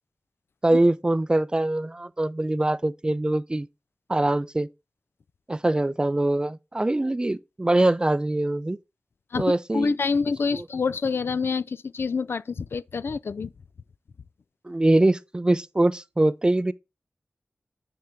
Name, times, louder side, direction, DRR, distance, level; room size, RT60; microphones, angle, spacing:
voice 1, 0.6-3.7 4.1-4.7 5.5-8.8 9.4-10.0 10.5-10.7 14.6-16.7, right 1 dB, 20° right, 0.4 m, -23 dB
voice 2, 9.7-13.5, left 5 dB, 70° left, 0.3 m, -27 dB
8.6 x 4.5 x 3.7 m
wide cardioid pair, 100°, 4 cm